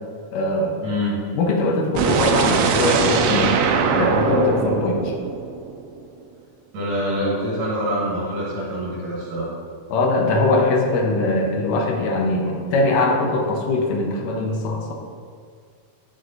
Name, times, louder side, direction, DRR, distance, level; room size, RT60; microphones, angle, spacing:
voice 1, 0.3-0.8 1.4-3.5 3.9-5.1 9.9-14.9, left 2 dB, 90° left, 1 dB, 2.5 m, -21 dB
voice 2, 0.8-1.2 6.7-9.5, equal, 60° right, -6 dB, 2.8 m, -25 dB
sound 1, 1.9-5.9, right 5 dB, 85° right, 1.5 m, -21 dB
7.7 x 6.8 x 2.6 m, 2.1 s
omnidirectional pair, 3.7 m